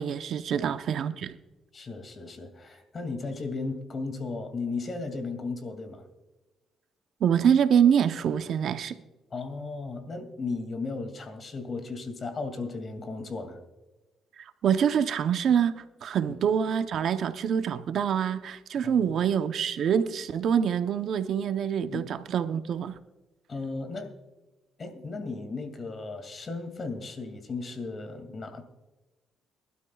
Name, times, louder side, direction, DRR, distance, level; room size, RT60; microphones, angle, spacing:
voice 1, 0.0-1.3 7.2-9.0 14.4-23.0, right 8 dB, 65° right, 0.8 m, -25 dB
voice 2, 1.7-6.1 9.3-13.6 16.2-16.3 18.7-19.0 21.8-22.0 23.5-24.1 24.8-28.6, left 3 dB, 40° left, 2.3 m, -35 dB
23.0 x 12.5 x 2.4 m
cardioid pair, 90°, 0 cm